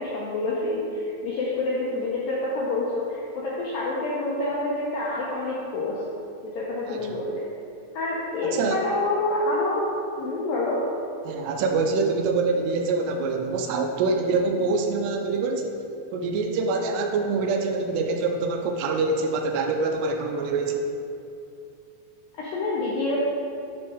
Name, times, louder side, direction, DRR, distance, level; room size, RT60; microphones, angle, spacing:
voice 1, 0.0-6.0 6.4-7.5 7.9-9.9 10.2-10.9 22.4-23.2, left 2 dB, 80° left, -5 dB, 2.0 m, -27 dB
voice 2, 8.5-8.8 11.3-15.8 16.1-20.9, right 3 dB, 80° right, 3 dB, 2.6 m, -25 dB
10.5 x 3.6 x 4.9 m, 2.6 s
omnidirectional pair, 5.0 m